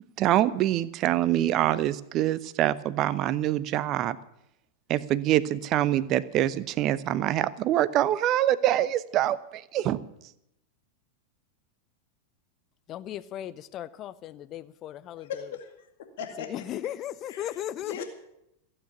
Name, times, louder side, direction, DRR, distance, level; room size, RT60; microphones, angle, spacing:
voice 1, 0.2-4.2 4.9-10.0, right 13 dB, 35° right, 17 dB, 0.7 m, -25 dB
voice 2, 12.9-15.3 16.5-18.0, left 12 dB, 35° left, 17 dB, 0.6 m, -36 dB
voice 3, 15.2-15.9 16.2-16.6 17.3-18.0, left 7 dB, 55° left, 5 dB, 2.1 m, -39 dB
15.5 x 8.9 x 9.9 m, 0.80 s
figure-of-eight pair, 90°, 0 cm